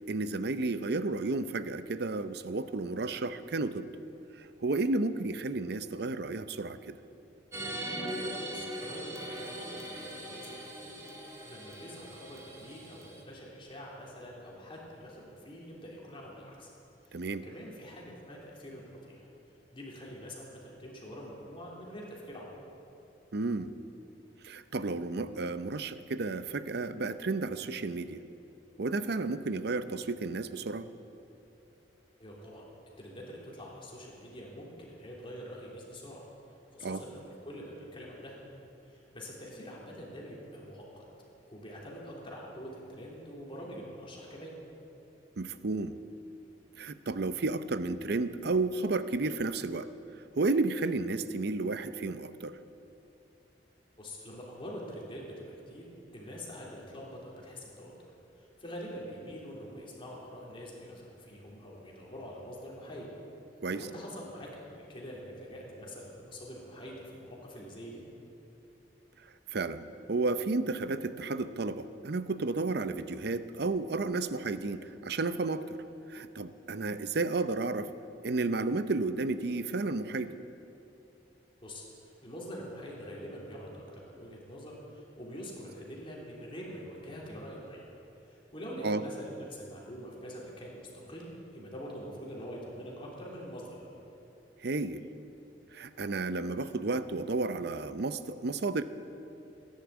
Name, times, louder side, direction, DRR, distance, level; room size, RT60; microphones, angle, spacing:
voice 1, 0.1-3.9 4.4-7.0 17.1-17.4 23.3-23.7 24.4-28.2 28.8-30.9 36.8-37.0 45.4-46.0 46.8-49.9 50.4-52.6 63.6-63.8 69.5-75.8 76.1-77.9 78.2-80.3 88.8-89.0 94.6-95.0 95.7-98.8, right 3 dB, 65° right, 12 dB, 0.6 m, -32 dB
sound 1, 7.5-13.2, right 1 dB, 15° right, 1.9 m, -40 dB
voice 2, 8.4-10.9 11.4-16.7 17.0-19.3 19.7-22.6 32.2-32.7 33.0-36.2 36.7-38.4 38.8-41.0 41.5-44.6 54.0-55.9 56.1-57.9 58.4-63.1 63.7-68.0 81.6-87.8 88.2-93.9, equal, 30° left, -4 dB, 3.1 m, -45 dB
16.5 x 10.5 x 8.1 m, 2.9 s
head